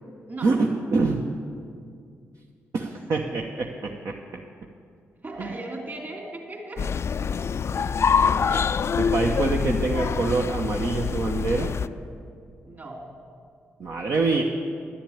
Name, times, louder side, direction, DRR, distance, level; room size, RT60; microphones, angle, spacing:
voice 1, 0.4-1.2 2.7-4.2 5.4-5.5 7.7-7.9 8.5-8.7 8.9-11.7 13.8-14.4, right 3 dB, 60° right, 0 dB, 0.9 m, -25 dB
voice 2, 5.2-6.9 12.6-13.0, right 2 dB, 35° right, 0 dB, 3.0 m, -37 dB
sound 1, 6.8-11.9, left 6 dB, 50° left, 0.3 m, -25 dB
10.5 x 7.2 x 8.7 m, 2.3 s
supercardioid pair, 45°, 6 cm